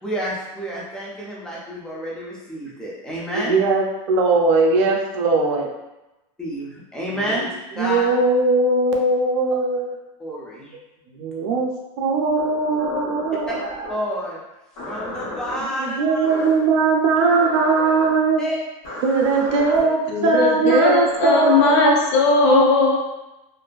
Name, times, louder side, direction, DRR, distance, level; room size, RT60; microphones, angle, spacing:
voice 1, 0.0-3.6 6.4-7.5 7.8-8.2 10.2-10.7 13.9-14.4 14.8-16.2 18.4-18.6, equal, 5° left, -6 dB, 0.3 m, -29 dB
voice 2, 3.3-5.7 7.2-7.4 7.8-10.0 11.1-11.7 12.0-13.6 15.6-18.4 19.0-22.0 22.5-22.7, right 3 dB, 60° right, 1 dB, 0.4 m, -20 dB
sound 1, 12.4-14.1 14.8-15.6 16.2-16.7 17.2-18.1 18.8-19.8 20.9-21.6, left 1 dB, 85° left, 1.1 m, -33 dB
voice 3, 20.1-23.0, left 4 dB, 55° left, -1 dB, 0.5 m, -18 dB
2.5 x 2.2 x 2.3 m, 0.98 s
supercardioid pair, 170°, 17 cm